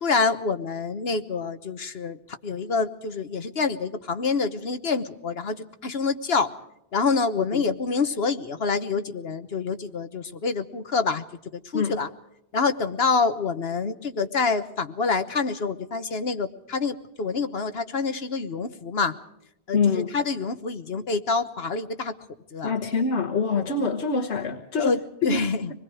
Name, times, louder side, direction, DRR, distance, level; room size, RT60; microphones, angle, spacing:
voice 1, 0.0-6.5 6.9-11.2 11.5-12.1 12.5-19.2 19.7-22.1 22.5-22.7 24.8-25.7, left 4 dB, 65° left, 10 dB, 1.4 m, -27 dB
voice 2, 19.7-20.1 22.6-25.4, left 4 dB, 90° left, 2 dB, 1.6 m, -25 dB
26.5 x 20.5 x 4.9 m, 0.80 s
omnidirectional pair, 1.1 m